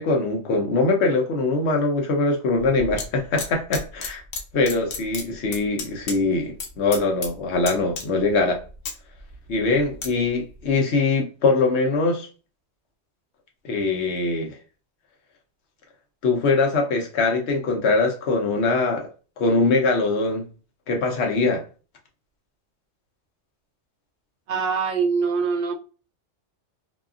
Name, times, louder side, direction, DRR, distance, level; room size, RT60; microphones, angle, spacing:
voice 1, 0.0-4.2 4.5-8.6 9.5-12.3 13.6-14.5 16.2-19.1 19.4-20.5 20.9-21.6, left 3 dB, 65° left, 1.0 m, -22 dB
sound 1, 2.6-3.0 3.4-4.4 4.7-6.2 6.4-6.7 6.9-7.3 7.6-8.3 8.7-10.1 10.6-10.7, left 4 dB, 85° left, 1.0 m, -32 dB
voice 2, 24.5-25.7, right 5 dB, 60° right, 0.7 m, -23 dB
2.7 x 2.3 x 2.4 m
omnidirectional pair, 1.3 m